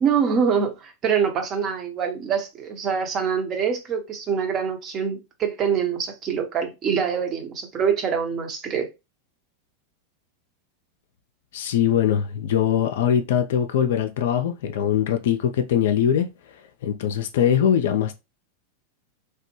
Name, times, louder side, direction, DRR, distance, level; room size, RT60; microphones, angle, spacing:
voice 1, 0.0-8.9, right 7 dB, 30° right, 0.7 m, -24 dB
voice 2, 11.5-16.3 16.8-18.1, left 9 dB, 55° left, 0.3 m, -22 dB
3.3 x 2.1 x 3.0 m
figure-of-eight pair, 90°, 0 cm